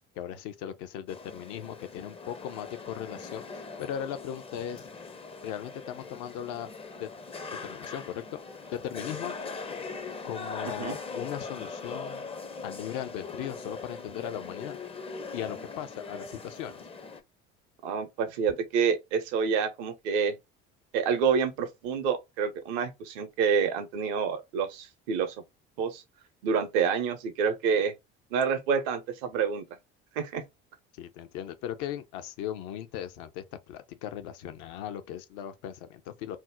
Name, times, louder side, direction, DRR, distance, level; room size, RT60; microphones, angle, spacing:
voice 1, 0.1-4.9 5.4-6.7 7.0-7.1 7.6-8.4 8.7-9.3 10.2-12.3 12.6-14.8 15.3-16.9 30.9-36.4, left 10 dB, 60° left, 0.6 m, -38 dB
sound 1, 1.1-17.2, left 4 dB, 15° left, 0.5 m, -41 dB
voice 2, 10.7-11.0 17.8-20.4 20.9-25.4 25.8-26.0 26.4-27.9 28.3-29.6 30.2-30.4, right 6 dB, 70° right, 0.7 m, -28 dB
2.6 x 2.0 x 3.5 m
hypercardioid pair, 60°, 34 cm